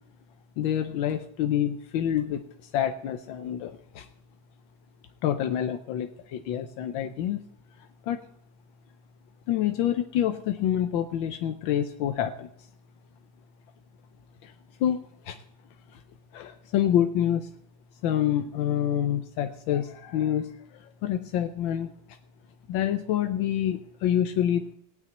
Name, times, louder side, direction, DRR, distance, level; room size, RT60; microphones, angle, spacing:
voice 1, 0.6-2.4 2.7-4.1 5.2-7.4 8.1-8.2 9.5-12.5 14.4-14.5 14.8-15.0 15.2-15.4 15.9-16.0 16.3-17.5 18.0-20.5 20.8-21.9 22.7-24.6, left 10 dB, 85° left, 7 dB, 1.5 m, -27 dB
17.5 x 5.9 x 9.2 m, 0.72 s
omnidirectional pair, 2.1 m